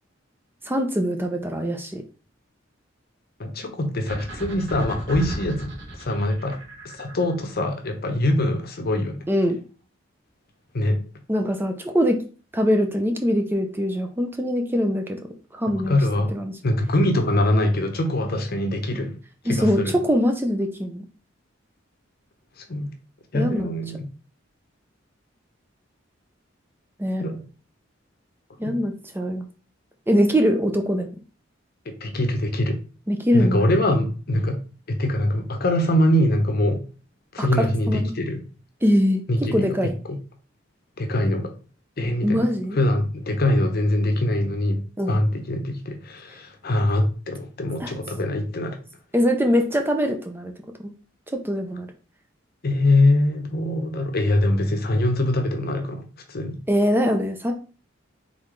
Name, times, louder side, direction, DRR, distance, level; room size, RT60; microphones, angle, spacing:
voice 1, 0.7-2.0 9.3-9.6 11.3-12.2 12.5-15.2 15.5-16.0 16.3-16.5 19.5-21.0 23.3-23.7 27.0-27.2 28.6-29.5 30.1-31.1 33.1-33.6 37.4-38.1 38.8-39.2 39.5-40.0 42.2-42.8 45.0-45.2 47.8-47.9 49.1-50.5 51.4-51.9 56.7-57.5, equal, 10° right, 4 dB, 0.5 m, -22 dB
voice 2, 3.4-6.6 6.8-9.3 10.7-11.0 15.7-16.3 16.6-19.2 19.4-20.0 22.6-22.9 23.3-24.1 27.2-27.4 28.6-28.8 31.9-32.8 33.3-34.6 34.9-36.8 37.3-38.5 39.3-40.2 41.0-41.5 42.0-44.8 45.1-48.8 52.6-56.6, left 1 dB, 55° left, 6 dB, 0.8 m, -23 dB
sound 1, 4.1-7.5, right 1 dB, 65° right, 1.4 m, -35 dB
3.9 x 3.7 x 3.2 m, 0.37 s
head